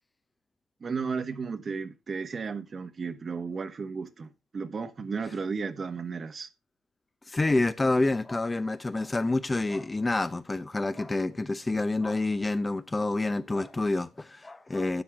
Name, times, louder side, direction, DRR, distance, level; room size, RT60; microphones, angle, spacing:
voice 1, 0.8-6.5, right 5 dB, 40° right, 1.2 m, -34 dB
voice 2, 7.3-15.0, left 2 dB, 20° left, 0.6 m, -28 dB
12.0 x 8.6 x 3.4 m
cardioid pair, 90°, 0 cm